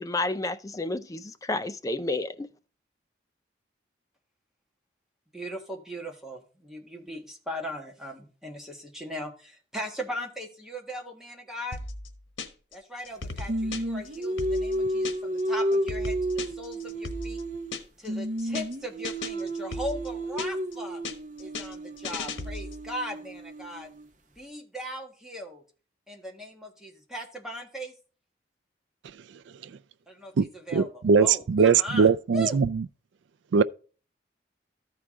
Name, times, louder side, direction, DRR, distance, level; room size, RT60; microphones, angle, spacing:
voice 1, 0.0-2.5, left 2 dB, 20° left, 0.4 m, -30 dB
voice 2, 5.3-11.8 12.7-17.4 18.0-21.0 21.4-23.9 24.3-25.6 26.1-27.9 30.1-32.6, equal, 5° right, 1.4 m, -38 dB
sound 1, 11.7-12.7 13.0-15.4 15.7-18.1 18.4-18.7 19.0-20.7 21.0-22.8, left 3 dB, 90° left, 1.1 m, -37 dB
Singing, 13.5-17.8 18.1-24.1, right 1 dB, 40° right, 0.8 m, -32 dB
voice 3, 30.4-32.8 33.5-33.6, right 5 dB, 80° right, 0.4 m, -21 dB
13.5 x 4.8 x 3.6 m
head